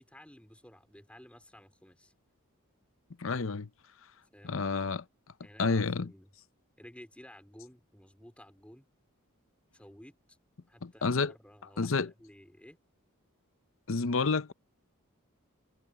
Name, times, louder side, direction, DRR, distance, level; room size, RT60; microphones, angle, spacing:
voice 1, 0.0-2.1 4.3-4.6 5.4-6.3 6.8-8.9 9.7-10.4 10.7-12.8, equal, 5° left, 3.4 m, -54 dB
voice 2, 3.2-3.7 4.4-5.0 5.6-6.1 10.8-11.3 11.8-12.1 13.9-14.5, left 4 dB, 65° left, 0.8 m, -29 dB
head